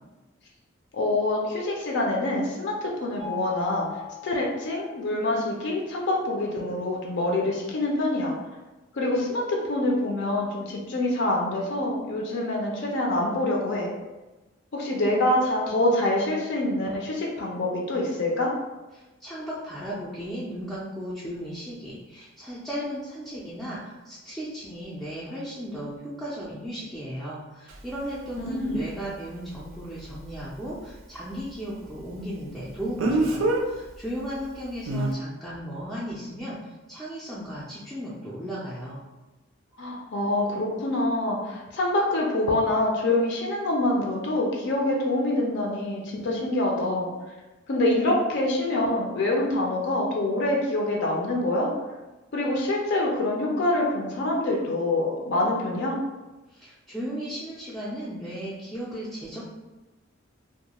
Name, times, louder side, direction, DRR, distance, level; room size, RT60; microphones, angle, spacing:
voice 1, 0.9-3.9 4.2-8.3 8.9-13.9 14.7-18.5 28.4-28.8 39.8-47.1 47.7-51.7 52.3-56.0, left 1 dB, 60° left, -1 dB, 0.5 m, -25 dB
Mallet percussion, 3.2-5.2, left 10 dB, 85° left, 0.8 m, -39 dB
voice 2, 18.9-39.0 56.5-59.4, equal, ahead, -9 dB, 0.3 m, -35 dB
Speech, 27.7-27.8 33.0-33.6 34.9-35.1, right 2 dB, 75° right, 0.4 m, -23 dB
2.3 x 2.1 x 2.8 m, 1.1 s
head